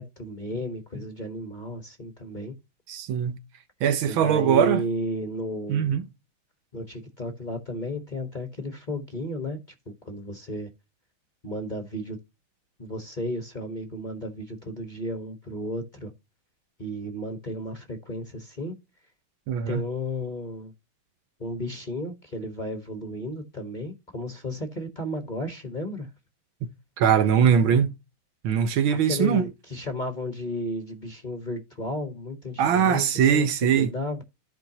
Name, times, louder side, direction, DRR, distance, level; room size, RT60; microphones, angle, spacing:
voice 1, 0.0-2.5 4.1-6.0 6.7-9.6 9.9-10.7 11.4-12.2 12.8-16.1 16.8-18.7 19.7-20.7 21.4-26.1 27.6-27.7 28.9-33.1 33.3-33.5 33.8-34.2, equal, 25° left, 1.2 m, -33 dB
voice 2, 2.9-3.4 3.8-4.8 5.7-6.0 19.5-19.8 26.6-26.7 27.0-27.9 28.4-29.4 32.6-33.9, right 8 dB, 75° right, 1.6 m, -21 dB
14.0 x 4.8 x 2.9 m
omnidirectional pair, 2.3 m